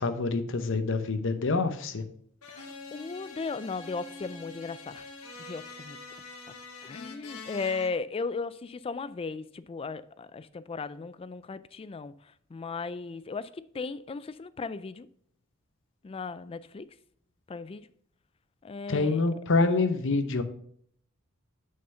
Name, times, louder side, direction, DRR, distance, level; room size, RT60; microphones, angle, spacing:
voice 1, 0.0-2.0 18.9-20.4, left 3 dB, 60° left, 0.8 m, -26 dB
sound 1, 2.4-7.9, left 3 dB, 85° left, 1.4 m, -45 dB
voice 2, 2.5-5.1 5.5-6.0 6.8-12.1 12.5-15.1 16.0-16.9 17.5-17.9 18.6-19.2, left 4 dB, 25° left, 0.3 m, -36 dB
6.6 x 5.6 x 5.5 m
head